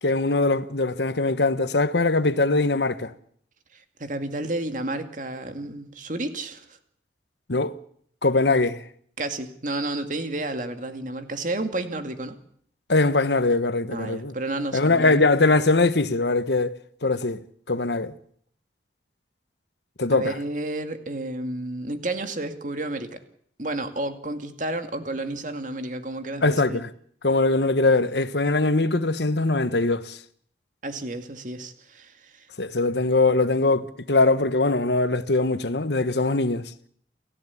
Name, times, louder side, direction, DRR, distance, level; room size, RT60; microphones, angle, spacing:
voice 1, 0.0-3.1 7.5-7.8 8.2-8.8 12.9-14.3 14.7-18.1 20.0-20.4 26.4-26.9 27.2-30.2 32.6-36.6, left 3 dB, 75° left, 1.2 m, -22 dB
voice 2, 3.7-6.7 9.2-12.4 13.9-15.2 20.1-23.2 23.6-26.8 30.8-32.5, right 2 dB, 45° right, 2.3 m, -31 dB
29.0 x 15.0 x 8.4 m
head